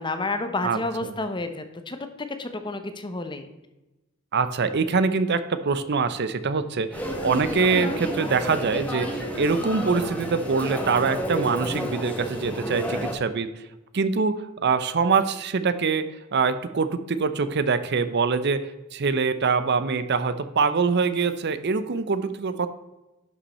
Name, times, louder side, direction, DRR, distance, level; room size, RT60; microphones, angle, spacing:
voice 1, 0.0-2.0 2.4-3.5, left 2 dB, 25° left, 8 dB, 0.8 m, -30 dB
voice 2, 0.6-1.1 4.3-13.5 13.9-16.0 16.3-22.7, right 4 dB, 55° right, 12 dB, 0.6 m, -24 dB
sound 1, 6.9-13.1, equal, 5° left, 1.4 m, -30 dB
11.0 x 5.6 x 4.2 m, 1.0 s
head